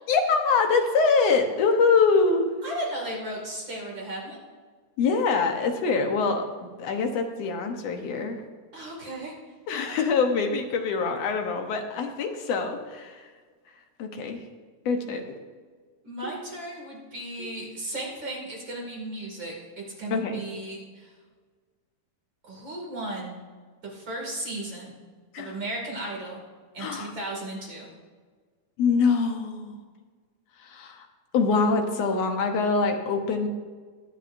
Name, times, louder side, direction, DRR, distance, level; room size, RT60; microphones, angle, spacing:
voice 1, 0.1-2.5 5.0-6.4 6.8-8.4 9.7-13.3 14.0-14.4 14.9-15.2 17.4-17.5 20.1-20.4 25.3-25.6 26.8-27.1 28.8-29.8 30.6-31.1 31.3-33.5, left 4 dB, 65° left, 4 dB, 1.9 m, -24 dB
voice 2, 2.6-4.4 8.7-9.3 16.0-21.1 22.4-23.4 23.8-24.9 25.4-26.4 26.7-27.9, right 1 dB, 35° right, -2 dB, 2.7 m, -35 dB
22.0 x 8.2 x 2.6 m, 1.5 s
omnidirectional pair, 3.8 m